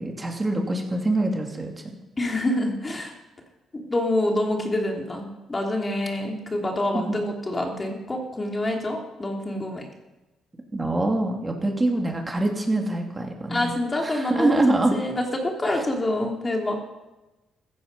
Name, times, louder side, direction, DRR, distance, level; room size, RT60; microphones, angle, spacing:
voice 1, 0.0-1.7 6.9-7.2 10.7-13.7 14.0-15.0 15.6-15.8, right 2 dB, 20° right, 1 dB, 2.8 m, -24 dB
voice 2, 2.2-3.1 3.7-9.8 13.5-14.6 14.9-16.8, left 1 dB, 25° left, 1 dB, 2.9 m, -26 dB
15.5 x 13.5 x 5.5 m, 1.1 s
cardioid pair, 90°, 0 cm